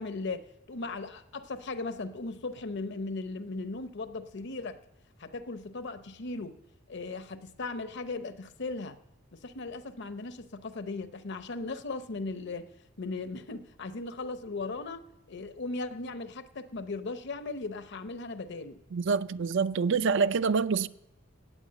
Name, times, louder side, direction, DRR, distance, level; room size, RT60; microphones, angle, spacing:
voice 1, 0.0-4.8 5.2-6.6 6.9-9.0 9.3-12.7 13.0-18.8, left 3 dB, 60° left, 0.8 m, -37 dB
voice 2, 18.9-20.9, right 5 dB, 60° right, 0.5 m, -26 dB
15.5 x 9.0 x 7.7 m
head